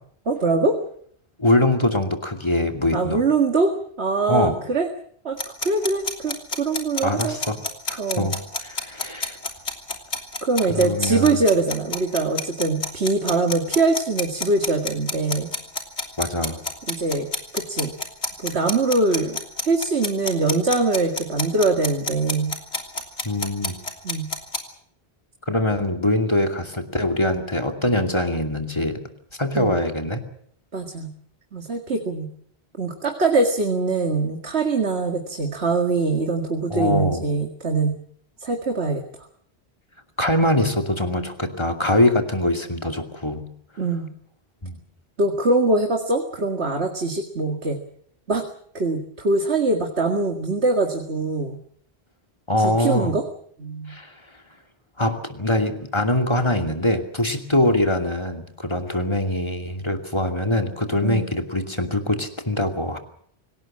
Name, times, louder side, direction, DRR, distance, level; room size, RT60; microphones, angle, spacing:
voice 1, 0.3-0.8 2.9-4.9 5.2-7.4 8.0-8.3 10.4-15.5 16.9-17.3 17.5-17.9 18.4-22.5 24.0-24.3 29.5-29.8 30.7-31.1 31.5-32.3 32.8-38.0 38.4-39.0 43.8-44.1 45.2-47.8 48.3-48.4 48.7-51.6 52.6-53.2 53.6-54.0 61.0-61.3, right 3 dB, 85° right, 4 dB, 2.3 m, -23 dB
voice 2, 1.4-3.2 4.3-4.6 7.0-7.6 7.9-9.4 10.7-11.4 16.2-16.6 23.2-23.8 25.5-29.1 29.4-30.2 36.7-37.2 40.2-43.5 44.6-44.8 52.5-53.1 53.9-54.1 55.0-63.0, left 1 dB, 25° left, 4 dB, 2.7 m, -23 dB
sound 1, 5.4-24.6, left 3 dB, 90° left, 3.5 m, -28 dB
26.0 x 18.0 x 7.5 m, 0.64 s
omnidirectional pair, 1.1 m